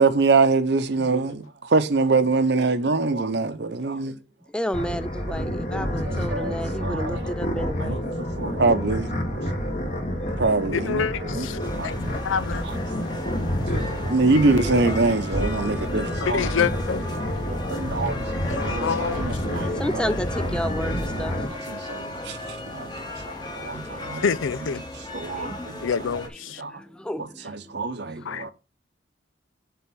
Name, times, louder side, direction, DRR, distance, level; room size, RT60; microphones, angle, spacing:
voice 1, 0.0-4.2 5.8-7.4 7.8-9.5 10.4-12.2 12.6-12.8 13.7-16.5 17.5-18.3 18.6-20.1 20.6-20.7 21.5-23.0 23.3-24.2 24.6-24.7 24.9-26.1 26.6-26.8 27.2-28.5, right 3 dB, 60° right, 0.8 m, -25 dB
voice 2, 4.5-8.0 9.4-10.4 10.7-11.3 11.8-12.0 12.5-13.3 19.7-24.2 25.4-26.0 26.5-27.8 28.3-28.5, equal, 5° left, 0.3 m, -34 dB
sound 1, 4.7-21.5, equal, 40° left, 1.6 m, -29 dB
voice 3, 10.8-11.6 11.8-12.0 12.2-12.6 16.2-17.0 18.5-19.2 24.2-24.8 25.8-26.6 28.3-28.5, left 6 dB, 90° left, 0.5 m, -27 dB
sound 2, 11.6-26.3, left 1 dB, 20° left, 1.3 m, -36 dB
6.9 x 3.8 x 6.1 m
head